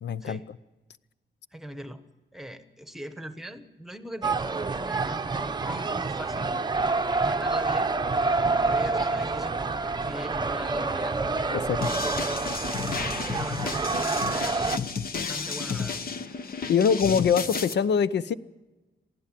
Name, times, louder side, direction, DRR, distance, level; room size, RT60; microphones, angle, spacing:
voice 1, 0.0-0.4 11.5-11.8 16.7-18.3, left 7 dB, 70° left, 16 dB, 0.7 m, -23 dB
voice 2, 1.5-2.0 2.3-6.9 7.2-8.0 8.5-9.6 10.0-11.2 13.3-14.7 15.1-16.0, equal, ahead, 9 dB, 1.2 m, -41 dB
sound 1, 4.2-14.8, right 3 dB, 25° right, 0.7 m, -27 dB
sound 2, 11.8-17.7, left 5 dB, 55° left, 1.1 m, -32 dB
23.0 x 16.0 x 7.6 m, 1.2 s
wide cardioid pair, 140°, 19 cm